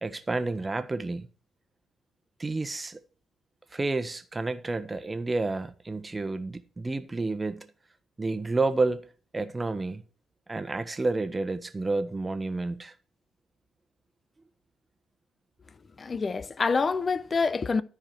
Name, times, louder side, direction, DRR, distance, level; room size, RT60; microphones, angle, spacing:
voice 1, 0.0-1.3 2.4-3.0 3.7-7.7 8.2-9.1 9.3-10.0 10.5-12.9, right 3 dB, 20° right, 1.2 m, -30 dB
voice 2, 16.0-17.8, left 4 dB, 35° left, 0.7 m, -26 dB
13.5 x 4.9 x 7.5 m
cardioid pair, 90°, 0 cm